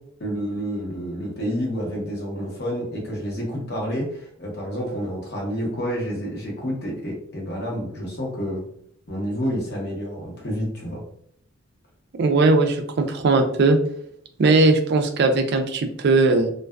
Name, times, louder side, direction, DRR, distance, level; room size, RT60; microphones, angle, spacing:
voice 1, 0.2-8.6 9.1-11.0, equal, 50° left, -2 dB, 1.0 m, -29 dB
voice 2, 12.1-13.8 14.4-16.5, right 3 dB, 55° right, 6 dB, 0.4 m, -19 dB
2.5 x 2.3 x 2.2 m, 0.65 s
head